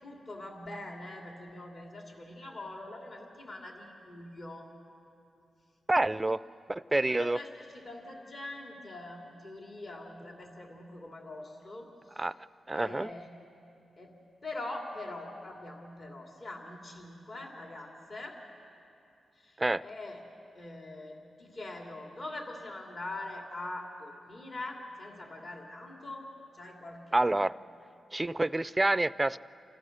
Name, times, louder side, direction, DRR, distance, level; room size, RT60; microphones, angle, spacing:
voice 1, 0.0-4.7 6.1-6.3 6.9-12.4 12.7-13.3 14.0-18.4 19.3-20.2 20.5-26.3 26.5-27.4, left 2 dB, 50° left, 0 dB, 2.7 m, -43 dB
voice 2, 5.9-6.4 6.7-7.4 12.2-12.3 12.7-13.1 19.6-19.8 27.1-27.5 28.1-29.4, right 2 dB, 20° right, 16 dB, 0.4 m, -27 dB
28.5 x 14.5 x 6.5 m, 2.7 s
cardioid pair, 75°, 0 cm